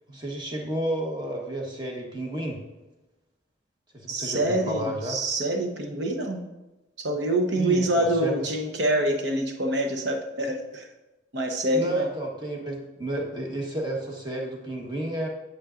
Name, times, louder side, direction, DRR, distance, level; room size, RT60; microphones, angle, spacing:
voice 1, 0.1-2.6 3.9-5.2 7.5-8.6 11.7-15.3, right 1 dB, 20° right, 0 dB, 1.2 m, -31 dB
voice 2, 4.1-6.4 7.0-10.9 11.3-12.1, right 1 dB, 60° right, 4 dB, 0.9 m, -26 dB
8.5 x 7.8 x 2.5 m, 1.1 s
head